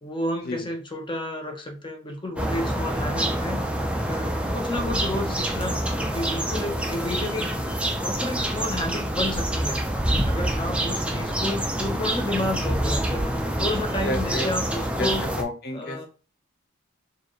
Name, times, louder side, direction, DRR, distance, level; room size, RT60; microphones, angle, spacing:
voice 1, 0.0-3.7 4.1-7.5 8.0-9.8 10.2-13.3 13.6-15.3 15.7-16.1, left 1 dB, 25° left, 3 dB, 0.8 m, -31 dB
sound 1, 2.4-15.4, right 1 dB, 5° right, 0.4 m, -26 dB
voice 2, 14.0-14.5 15.0-16.1, left 1 dB, 50° left, 2 dB, 1.0 m, -31 dB
4.7 x 2.5 x 3.1 m, 0.35 s
head